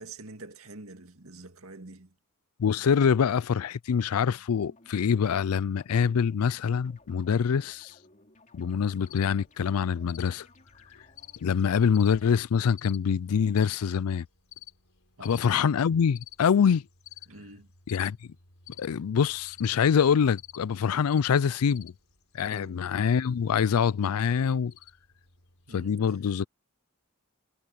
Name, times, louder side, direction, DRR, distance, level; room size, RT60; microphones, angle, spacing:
voice 1, 0.0-2.1 15.2-15.6 17.3-17.7 22.5-22.8 25.7-26.0, right 3 dB, 70° right, 2.1 m, -46 dB
voice 2, 2.6-7.9 8.5-10.5 11.4-14.3 15.2-16.8 17.9-18.2 18.8-21.9 22.3-24.7 25.7-26.5, left 7 dB, 80° left, 0.4 m, -25 dB
sound 1, 4.2-12.4, left 2 dB, 35° left, 3.3 m, -59 dB
Cricket, 9.1-25.8, left 13 dB, 65° left, 5.1 m, -52 dB
head